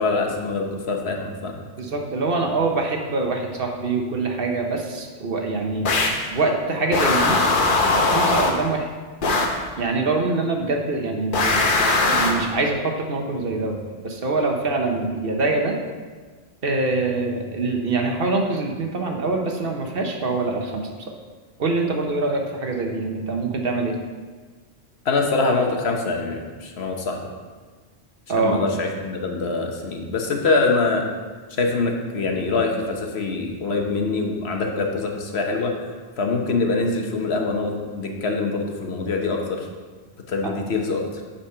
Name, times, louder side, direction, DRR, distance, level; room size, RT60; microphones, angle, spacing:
voice 1, 0.0-1.6 25.0-27.2 28.4-31.0 31.6-35.7 36.2-39.6 40.3-41.0, left 3 dB, 70° left, 2 dB, 1.2 m, -24 dB
voice 2, 1.8-6.0 6.3-7.4 7.9-8.9 9.8-11.8 12.0-15.7 16.6-20.9 21.6-24.0 28.3-28.6 40.4-40.5, right 3 dB, 60° right, 2 dB, 1.1 m, -24 dB
sound 1, 5.8-6.3 6.9-8.7 9.2-9.6 11.3-12.5, left 3 dB, 50° left, 1.0 m, -20 dB
8.7 x 4.3 x 5.5 m, 1.4 s
omnidirectional pair, 1.1 m